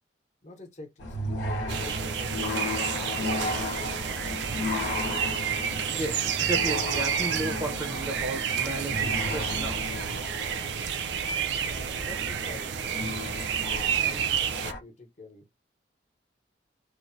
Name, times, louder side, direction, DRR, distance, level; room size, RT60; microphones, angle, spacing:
voice 1, 0.4-3.2 11.6-14.3 14.5-15.5, left 1 dB, 40° left, 0.8 m, -47 dB
sound 1, 1.0-14.8, left 1 dB, 80° left, 0.7 m, -34 dB
sound 2, 1.7-14.7, right 8 dB, 70° right, 0.3 m, -30 dB
voice 2, 5.9-9.8, right 2 dB, 15° right, 0.5 m, -34 dB
3.1 x 2.1 x 2.5 m
head